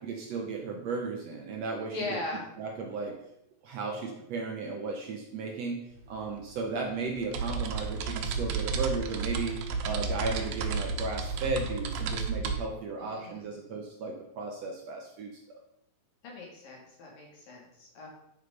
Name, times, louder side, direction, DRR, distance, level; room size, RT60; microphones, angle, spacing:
voice 1, 0.2-2.0 2.6-3.2 3.6-5.8 6.1-15.4, right 4 dB, 65° right, 1 dB, 1.8 m, -35 dB
voice 2, 1.9-2.4 13.0-13.7 16.2-18.1, left 2 dB, 80° left, -2 dB, 4.2 m, -39 dB
sound 1, 5.9-6.0 6.3-12.6, right 4 dB, 85° right, 2.7 m, -32 dB
9.8 x 5.1 x 5.3 m, 0.76 s
omnidirectional pair, 4.0 m